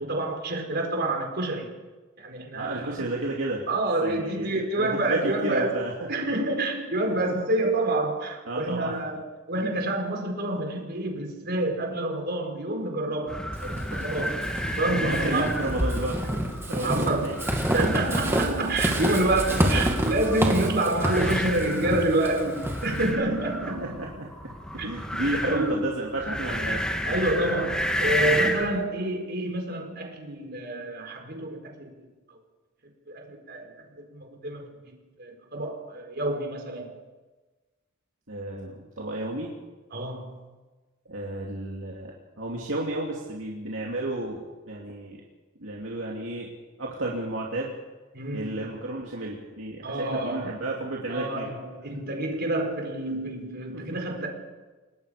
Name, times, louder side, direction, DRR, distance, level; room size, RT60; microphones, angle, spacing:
voice 1, 0.0-1.7 2.2-2.9 3.7-5.7 6.1-9.2 9.5-15.5 16.8-17.3 17.7-23.8 24.8-24.9 25.4-25.8 27.0-32.4 33.1-36.9 39.9-40.4 48.1-48.6 49.8-50.5 51.1-54.3, right 2 dB, 55° right, 2 dB, 4.5 m, -28 dB
voice 2, 2.5-3.7 4.0-5.9 8.5-8.9 14.0-14.1 15.0-16.2 16.6-17.4 17.9-18.0 19.2-19.9 20.4-20.7 23.2-23.3 23.8-24.3 24.7-26.8 38.3-39.5 41.1-45.2 45.6-46.5 46.8-47.8 48.3-51.5 53.7-54.1, right 2 dB, 70° right, -3 dB, 2.8 m, -32 dB
sound 1, 13.3-28.8, equal, 5° left, 2.1 m, -32 dB
Walk footsteps / Squeak, 13.5-23.1, equal, 15° right, 2.7 m, -28 dB
29.5 x 19.5 x 5.2 m, 1.3 s
head